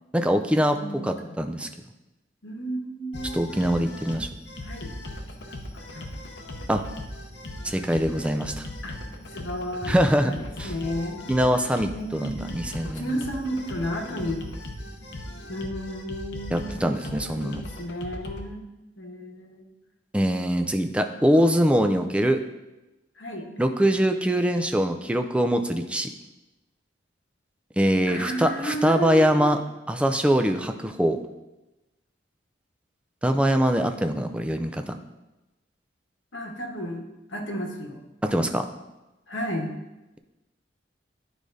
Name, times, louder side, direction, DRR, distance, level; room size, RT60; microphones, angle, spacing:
voice 1, 0.1-0.8 1.0-1.7 3.3-4.3 6.7-6.8 7.6-8.7 9.8-10.3 10.6-10.7 11.3-13.2 16.5-17.6 20.1-22.4 23.6-26.1 27.8-29.6 29.9-31.2 33.2-34.9 38.2-38.7, equal, 5° right, 6 dB, 0.3 m, -23 dB
voice 2, 0.7-1.3 2.4-3.4 4.6-4.9 5.7-6.0 8.8-9.0 9.3-11.2 11.9-12.5 12.8-14.4 15.5-18.6 19.0-19.7 21.4-21.5 23.2-23.5 28.1-29.5 36.3-38.0 39.3-39.7, equal, 85° left, 1 dB, 1.1 m, -33 dB
sound 1, 3.1-18.5, left 1 dB, 60° left, 0.7 m, -38 dB
10.5 x 4.8 x 2.6 m, 1.0 s
head